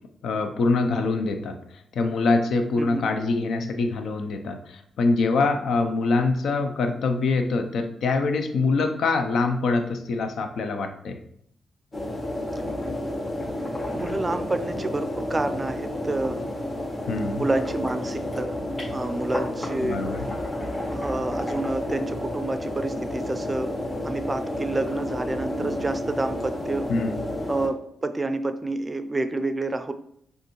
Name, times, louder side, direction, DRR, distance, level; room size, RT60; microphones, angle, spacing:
voice 1, 0.2-1.6 2.0-11.2 17.1-17.4 19.8-20.3 26.9-27.2, left 3 dB, 75° left, 6 dB, 0.5 m, -24 dB
sound 1, 11.9-27.7, left 1 dB, 35° left, 1.5 m, -31 dB
voice 2, 13.9-16.4 17.4-18.6 18.9-20.0 20.9-23.7 24.0-26.9 27.5-29.9, right 2 dB, 25° right, 10 dB, 0.4 m, -28 dB
5.0 x 2.5 x 3.0 m, 0.71 s
supercardioid pair, 55°, 0 cm